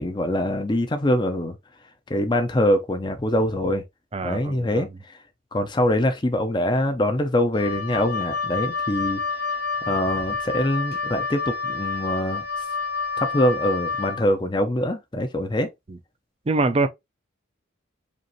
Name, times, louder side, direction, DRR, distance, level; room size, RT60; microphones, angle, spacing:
voice 1, 0.0-1.6 2.1-3.8 4.2-4.9 5.5-9.2 9.9-12.4 13.2-15.7, left 1 dB, 20° left, 0.5 m, -23 dB
voice 2, 4.1-4.9 15.9-16.0 16.5-16.9, right 3 dB, 30° right, 0.4 m, -24 dB
Wind instrument woodwind instrument, 7.5-14.2, left 4 dB, 50° left, 0.9 m, -28 dB
5.1 x 2.5 x 3.0 m
head